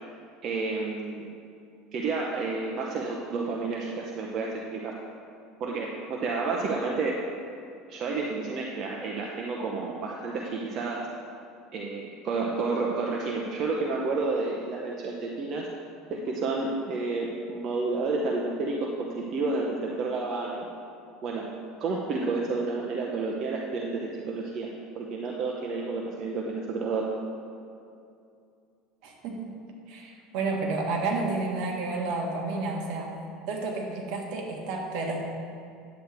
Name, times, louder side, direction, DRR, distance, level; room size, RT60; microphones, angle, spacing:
voice 1, 0.4-1.3 1.9-5.0 5.6-7.2 7.9-11.0 11.7-15.6 16.1-20.7 21.2-21.5 21.8-24.7 24.9-27.1, right 3 dB, 40° right, -2 dB, 0.8 m, -30 dB
voice 2, 29.0-29.5 29.9-33.1 33.5-35.3, right 3 dB, 65° right, 0 dB, 1.5 m, -31 dB
9.9 x 8.0 x 3.5 m, 2.5 s
supercardioid pair, 135°, 0 cm